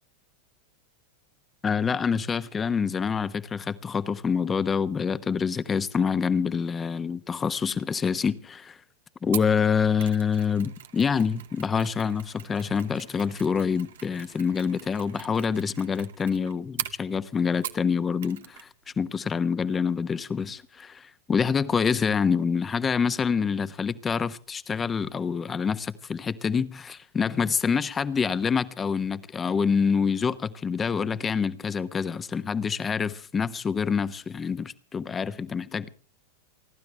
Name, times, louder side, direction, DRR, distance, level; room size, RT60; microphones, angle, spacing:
voice 1, 1.6-8.8 9.2-18.7 19.0-35.9, left 6 dB, 20° left, 1.1 m, -26 dB
Mechanisms, 9.3-17.9 18.2-18.7 18.9-19.1, right 11 dB, 70° right, 1.0 m, -41 dB
28.5 x 12.0 x 3.3 m
hypercardioid pair, 95°, 0 cm